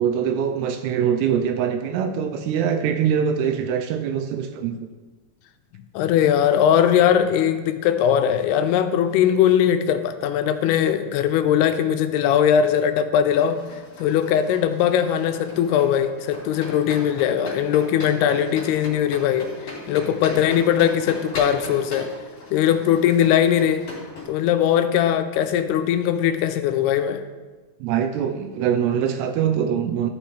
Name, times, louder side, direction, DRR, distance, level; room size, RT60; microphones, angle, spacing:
voice 1, 0.0-4.8 27.8-30.1, right 8 dB, 85° right, 7 dB, 2.6 m, -23 dB
voice 2, 5.9-13.6 14.0-19.5 19.9-22.1 22.5-23.8 24.3-27.2, left 9 dB, 85° left, 9 dB, 2.5 m, -20 dB
sound 1, 13.3-24.3, left 1 dB, 40° left, 3.9 m, -38 dB
14.0 x 6.4 x 3.2 m, 1.3 s
omnidirectional pair, 4.7 m